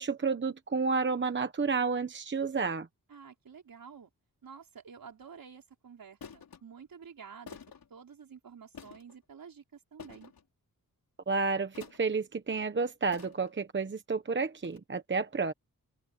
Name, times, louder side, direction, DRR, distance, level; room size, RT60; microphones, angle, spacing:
voice 1, 0.0-2.9 11.3-15.5, right 4 dB, 30° right, 1.0 m, -31 dB
voice 2, 3.1-4.1 4.4-7.6 7.9-10.3, right 6 dB, 70° right, 4.9 m, -50 dB
sound 1, 5.0-5.3 6.2-6.6 7.5-7.9 8.7-9.2 10.0-10.4 11.7-12.2 13.1-13.6 14.6-14.8, left 6 dB, 75° left, 3.7 m, -49 dB
open air
wide cardioid pair, 130°, 35 cm